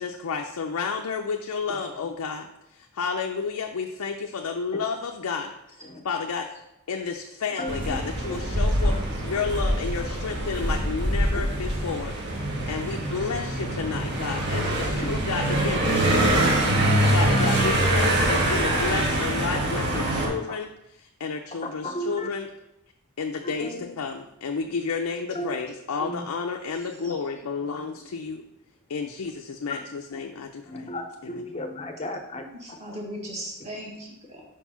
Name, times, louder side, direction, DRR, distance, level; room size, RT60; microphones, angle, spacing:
voice 1, 0.0-6.5 6.9-16.6 16.9-20.7 21.0-22.5 23.2-28.4 28.9-30.9, left 5 dB, 90° left, 3 dB, 0.5 m, -31 dB
voice 2, 7.6-8.0 20.5-20.6 21.8-22.3 23.4-24.0 25.3-25.6 26.0-26.2 27.6-27.7 29.7-29.8 30.1-30.2 30.6-32.8 33.6-33.8, equal, 30° left, 5 dB, 0.6 m, -35 dB
sound 1, 7.7-20.3, right 1 dB, 55° right, 1.3 m, -24 dB
voice 3, 32.6-34.4, equal, 30° right, -2 dB, 1.6 m, -38 dB
4.9 x 4.5 x 5.6 m, 0.88 s
head